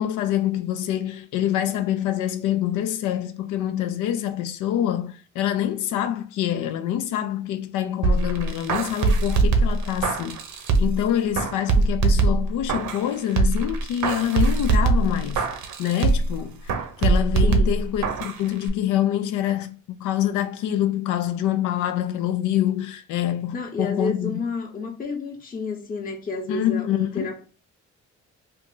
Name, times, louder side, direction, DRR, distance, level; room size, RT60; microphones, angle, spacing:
voice 1, 0.0-15.4 15.8-16.7 17.0-24.4 26.5-27.3, left 11 dB, 85° left, 0.5 m, -26 dB
sound 1, 8.0-11.0 11.3-13.1 13.4-16.3 16.7-18.4 18.7-18.8, right 3 dB, 75° right, 0.8 m, -22 dB
voice 2, 17.4-17.8 23.5-27.4, left 3 dB, 30° left, 0.8 m, -31 dB
2.8 x 2.5 x 3.7 m
cardioid pair, 90°, 30 cm